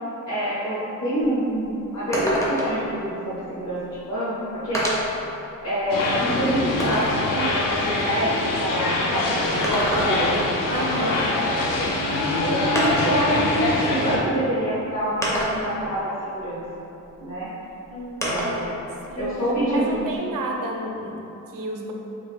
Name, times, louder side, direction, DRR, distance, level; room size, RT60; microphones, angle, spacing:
voice 1, 0.3-4.8 5.6-9.6 9.8-10.8 12.4-16.8 17.2-17.5 18.2-18.8 19.2-20.1, right 1 dB, 55° left, -12 dB, 1.0 m, -26 dB
sound 1, 1.2-1.3 1.6-1.7 2.1-2.9 3.9-4.0 4.7-5.2 5.8-7.2 9.4-10.4 11.9-12.0 12.7-13.2 14.2-14.3 15.2-15.8 18.2-18.7 19.0-20.2, equal, 10° left, 0.4 m, -27 dB
sound 2, 5.9-14.2, left 2 dB, 75° left, 0.5 m, -24 dB
voice 2, 10.7-11.3 17.9-18.7 19.1-19.3 19.7-21.2 21.5-21.9, right 1 dB, 80° right, 1 dB, 0.5 m, -31 dB
3.2 x 2.4 x 3.5 m, 2.9 s
wide cardioid pair, 165°, 33 cm